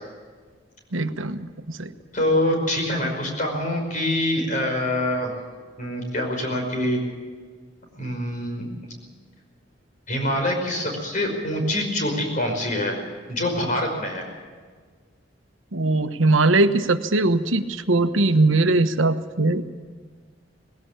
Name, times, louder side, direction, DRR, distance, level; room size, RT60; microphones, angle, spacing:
voice 1, 0.9-1.4 1.8-1.9 15.7-19.6, right 2 dB, 90° right, 9 dB, 1.2 m, -20 dB
voice 2, 2.1-5.3 5.8-7.0 8.0-8.7 10.1-13.0 13.3-14.3, left 1 dB, 40° left, 2 dB, 5.4 m, -25 dB
20.0 x 17.0 x 8.8 m, 1.5 s
head